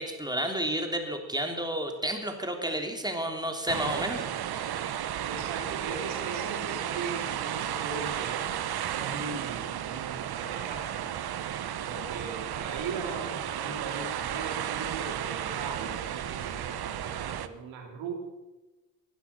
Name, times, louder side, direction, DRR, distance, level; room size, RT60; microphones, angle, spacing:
voice 1, 0.0-4.9, right 1 dB, 10° right, 3 dB, 3.4 m, -32 dB
sound 1, 3.7-17.5, right 10 dB, 50° right, 1.0 m, -33 dB
voice 2, 5.2-8.5 8.9-11.1 11.9-18.1, right 4 dB, 70° right, 2 dB, 3.4 m, -39 dB
20.0 x 12.0 x 5.8 m, 1.1 s
hypercardioid pair, 45°, 48 cm